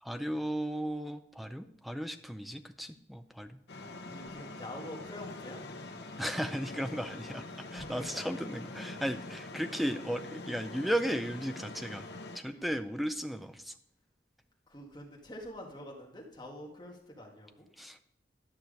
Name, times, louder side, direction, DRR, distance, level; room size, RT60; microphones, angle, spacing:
voice 1, 0.0-3.6 6.2-7.4 7.7-12.1 12.3-13.7 17.8-18.0, equal, ahead, 9 dB, 0.4 m, -35 dB
sound 1, 3.7-12.4, left 2 dB, 70° left, 0.9 m, -44 dB
voice 2, 4.0-5.6 7.7-8.4 12.4-12.7 14.7-17.6, left 1 dB, 25° left, -1 dB, 1.9 m, -46 dB
11.5 x 6.1 x 5.1 m, 0.78 s
head